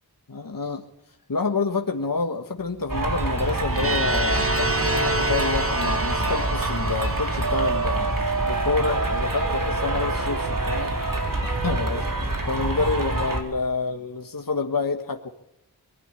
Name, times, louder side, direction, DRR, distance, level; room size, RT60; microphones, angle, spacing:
voice 1, 0.3-0.8 1.3-8.1 8.5-10.9 11.6-12.1 12.5-15.3, left 4 dB, 55° left, 4 dB, 1.6 m, -28 dB
sound 1, 2.9-13.4, right 2 dB, 50° right, 4.4 m, -26 dB
sound 2, 3.7-8.6, right 2 dB, 35° right, 2.0 m, -28 dB
23.0 x 12.0 x 9.8 m, 0.82 s
wide cardioid pair, 55°, 41 cm